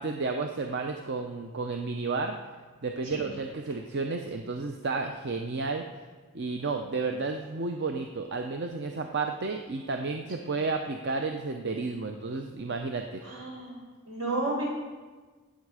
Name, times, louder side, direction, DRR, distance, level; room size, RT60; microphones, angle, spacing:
voice 1, 0.0-2.4 2.8-5.9 6.3-13.2, right 3 dB, 50° right, 5 dB, 0.6 m, -32 dB
voice 2, 13.2-13.8 14.0-14.6, right 2 dB, 75° right, -2 dB, 4.4 m, -32 dB
16.5 x 7.4 x 4.9 m, 1.4 s
head